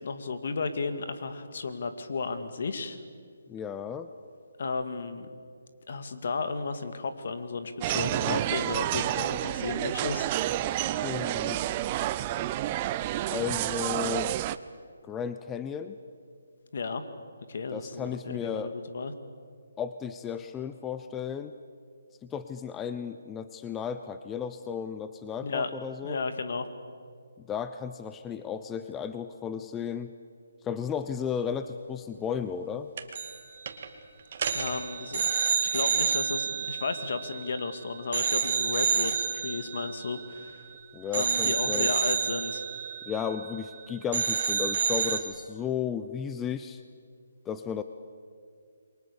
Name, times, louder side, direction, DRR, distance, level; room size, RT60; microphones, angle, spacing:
voice 1, 0.0-3.0 4.6-5.3 5.9-10.2 16.7-17.0 17.5-19.1 25.4-25.7 26.0-26.7 34.5-40.7 41.1-42.6, left 4 dB, 60° left, 9 dB, 2.2 m, -33 dB
voice 2, 3.5-4.1 11.0-11.6 13.3-14.4 15.0-16.0 17.7-18.7 19.8-21.6 22.2-26.2 27.5-30.1 30.6-32.9 40.9-41.9 43.1-46.8 47.4-47.8, left 7 dB, 15° left, 10 dB, 0.7 m, -34 dB
sound 1, 7.8-14.6, right 13 dB, 30° right, 0.7 m, -29 dB
sound 2, 33.0-33.4 33.7-33.9 34.3-37.7 38.1-40.7 41.1-43.8 44.1-45.2, right 7 dB, 50° right, 2.3 m, -29 dB
28.0 x 23.5 x 6.9 m, 2.2 s
figure-of-eight pair, 150°, 0 cm